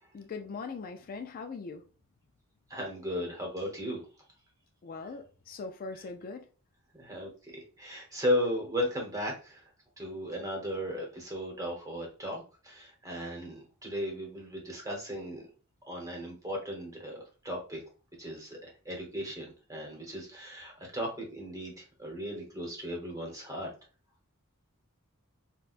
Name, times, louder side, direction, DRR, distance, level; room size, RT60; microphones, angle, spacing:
voice 1, 0.1-1.8 4.8-6.4, left 4 dB, 40° left, 5 dB, 0.3 m, -40 dB
voice 2, 2.7-4.0 5.0-5.1 5.9-6.1 6.9-9.7 10.0-15.4 15.9-17.8 18.2-23.7, equal, 15° right, 0 dB, 1.0 m, -36 dB
4.0 x 2.3 x 2.5 m, 0.35 s
head